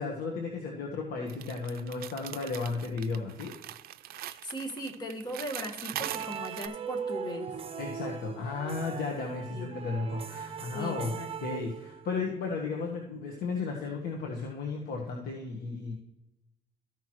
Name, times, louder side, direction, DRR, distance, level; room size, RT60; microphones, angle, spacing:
voice 1, 0.0-3.5 7.8-11.1 11.4-15.9, left 4 dB, 65° left, 1 dB, 1.5 m, -34 dB
sound 1, 1.3-6.7, right 13 dB, 65° right, 0.5 m, -41 dB
voice 2, 4.2-7.5 9.5-9.7 10.7-11.3 12.1-12.2, equal, 25° left, 3 dB, 1.7 m, -38 dB
sound 2, 5.9-12.2, right 7 dB, 35° right, 1.0 m, -39 dB
14.0 x 6.0 x 3.1 m, 0.91 s
cardioid pair, 110°, 17 cm